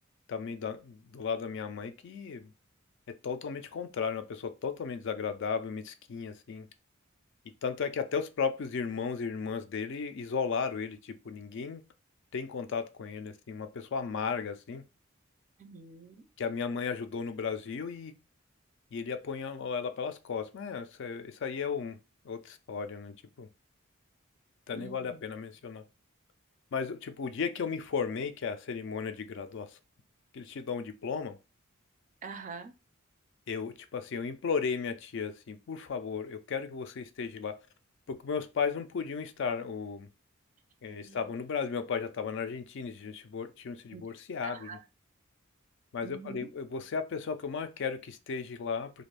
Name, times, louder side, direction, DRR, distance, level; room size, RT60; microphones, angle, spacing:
voice 1, 0.3-2.5 3.1-6.7 7.6-11.8 12.3-14.8 16.4-18.1 18.9-22.0 22.2-23.5 24.7-25.8 26.7-29.8 30.3-31.4 33.5-37.7 38.1-40.1 40.8-44.8 45.9-49.0, left 6 dB, 60° left, 0.4 m, -35 dB
voice 2, 15.6-16.2 24.7-25.2 32.2-32.7 40.9-41.2 43.9-44.0 44.4-44.8 46.0-46.5, right 5 dB, 35° right, 0.4 m, -45 dB
2.5 x 2.3 x 3.2 m
head